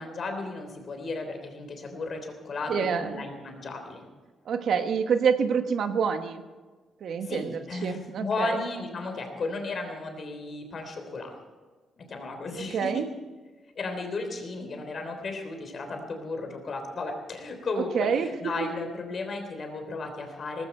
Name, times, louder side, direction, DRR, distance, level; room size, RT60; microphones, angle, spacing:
voice 1, 0.0-4.0 7.2-11.4 12.0-13.1 13.7-20.7, left 3 dB, 40° left, 5 dB, 3.4 m, -34 dB
voice 2, 2.7-3.2 4.5-6.4 7.0-8.6 12.7-13.1 17.8-18.3, right 6 dB, 60° right, 7 dB, 1.2 m, -27 dB
18.5 x 15.5 x 4.5 m, 1.4 s
cardioid pair, 145°, 0 cm